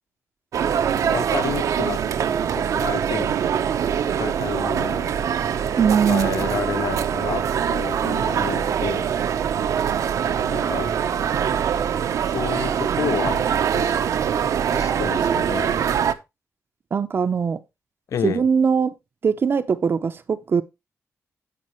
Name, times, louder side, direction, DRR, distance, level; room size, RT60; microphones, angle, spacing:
sound 1, 0.5-16.1, right 8 dB, 75° right, 0.8 m, -23 dB
voice 1, 1.0-2.0 2.5-3.4 4.2-5.2 6.1-9.1 10.4-10.9 12.2-13.5 13.7-14.0 14.7-15.8 18.1-18.4, left 8 dB, 70° left, 0.5 m, -30 dB
voice 2, 5.8-6.3 16.9-17.6 18.2-18.9 19.2-20.6, right 6 dB, 40° right, 0.7 m, -21 dB
16.0 x 5.4 x 3.1 m
wide cardioid pair, 160°, 6 cm